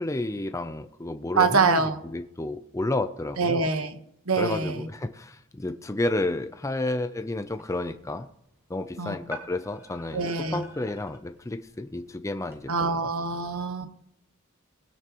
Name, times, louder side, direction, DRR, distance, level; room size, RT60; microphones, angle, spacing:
voice 1, 0.0-1.8 2.1-3.7 4.4-8.3 8.7-13.1, left 2 dB, 15° left, 9 dB, 0.5 m, -31 dB
voice 2, 1.4-2.0 3.4-4.0 4.3-4.9 9.0-9.1 10.1-10.6 12.7-13.9, right 4 dB, 80° right, 8 dB, 1.3 m, -25 dB
sound 1, 7.4-12.6, equal, 10° right, 2.4 m, -48 dB
20.5 x 9.3 x 3.0 m, 0.76 s
head